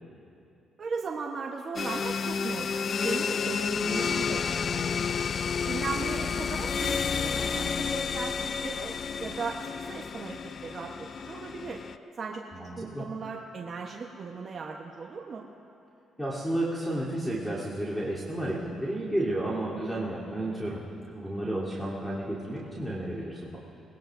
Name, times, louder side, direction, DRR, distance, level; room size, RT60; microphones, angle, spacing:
voice 1, 0.8-4.4 4.7-5.3 5.7-8.9 9.2-11.8 12.2-12.5 12.8-15.4, right 4 dB, 45° right, 0 dB, 1.1 m, -37 dB
sound 1, 1.8-12.0, left 6 dB, 45° left, 0.4 m, -30 dB
voice 2, 12.5-13.0 16.2-23.6, right 1 dB, 5° left, -9 dB, 3.3 m, -32 dB
21.5 x 18.5 x 2.6 m, 2.7 s
cardioid pair, 90°, 0 cm